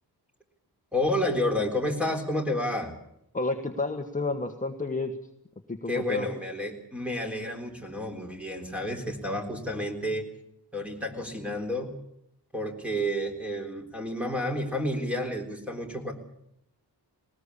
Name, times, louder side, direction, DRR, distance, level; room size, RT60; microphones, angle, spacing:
voice 1, 0.9-2.9 5.9-10.3 10.7-11.9 12.5-16.1, left 1 dB, 5° right, 3 dB, 3.8 m, -30 dB
voice 2, 3.3-5.1 5.7-6.3, left 3 dB, 20° left, 4 dB, 1.4 m, -30 dB
20.0 x 19.5 x 8.4 m, 0.78 s
wide cardioid pair, 120°, 40 cm